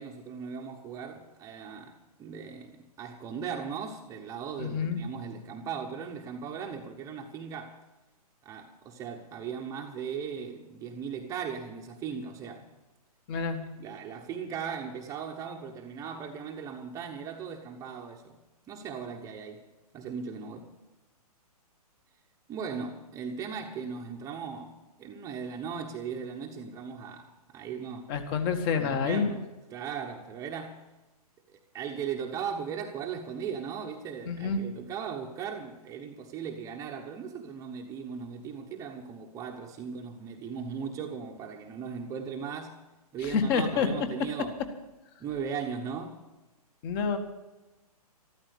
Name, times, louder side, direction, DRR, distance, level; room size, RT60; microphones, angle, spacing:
voice 1, 0.0-7.8 8.4-12.7 13.8-18.4 18.7-19.6 19.9-20.7 22.5-28.1 28.7-29.4 29.7-30.8 31.5-42.8 43.1-44.6 45.2-46.2, right 6 dB, 15° right, 1.0 m, -38 dB
voice 2, 4.6-5.0 13.3-13.6 28.1-29.3 34.3-34.7 43.2-43.9 46.8-47.2, left 5 dB, 35° left, 1.9 m, -28 dB
14.0 x 13.0 x 6.6 m
hypercardioid pair, 145°, 20 cm